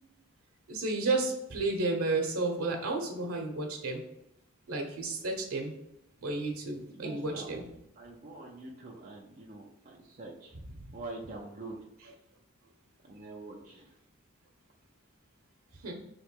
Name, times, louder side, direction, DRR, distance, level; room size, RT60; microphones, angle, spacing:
voice 1, 0.7-4.0 4.7-5.7 6.2-7.6 15.8-15.9, right 3 dB, 85° right, 2 dB, 1.0 m, -32 dB
voice 2, 6.9-7.6 8.0-10.6 10.9-11.8 13.1-13.9, right 2 dB, 40° right, -2 dB, 0.6 m, -45 dB
3.3 x 2.9 x 4.6 m, 0.87 s
head